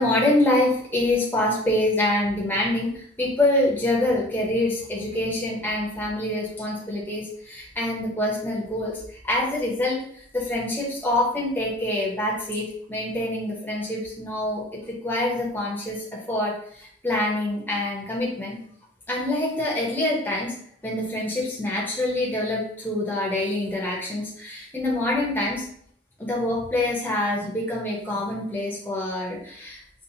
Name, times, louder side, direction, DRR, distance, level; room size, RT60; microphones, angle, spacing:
voice 1, 0.0-18.6 19.1-20.6 20.8-25.7 26.2-29.8, left 1 dB, 10° left, -4 dB, 0.7 m, -26 dB
5.4 x 2.1 x 2.7 m, 0.64 s
head